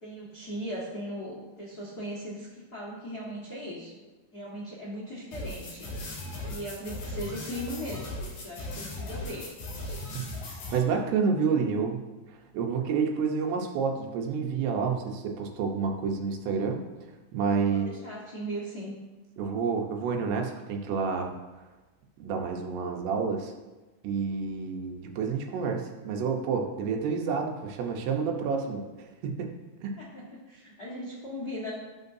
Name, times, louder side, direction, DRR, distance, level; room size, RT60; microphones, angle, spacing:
voice 1, 0.0-4.0 4.3-5.9 6.4-9.5 17.7-19.0 30.0-31.7, equal, 85° left, -6 dB, 0.8 m, -38 dB
sound 1, 5.3-10.8, left 1 dB, 50° left, 4.0 m, -38 dB
voice 2, 10.7-12.1 12.5-16.8 17.3-17.9 19.4-21.3 22.2-23.5 24.0-28.8 29.2-29.5 29.8-29.9, right 5 dB, 85° right, 2 dB, 3.1 m, -29 dB
16.0 x 6.3 x 2.7 m, 1.2 s
omnidirectional pair, 4.7 m